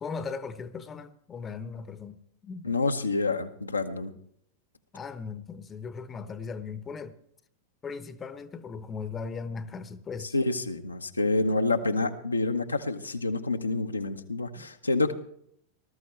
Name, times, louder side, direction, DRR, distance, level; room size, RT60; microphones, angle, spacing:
voice 1, 0.0-2.7 4.9-7.2 7.8-10.3 14.5-14.7, left 5 dB, 20° left, 0.9 m, -38 dB
voice 2, 2.6-4.1 10.3-15.1, left 3 dB, 80° left, 0.9 m, -28 dB
19.5 x 13.0 x 3.3 m
figure-of-eight pair, 90°, 0 cm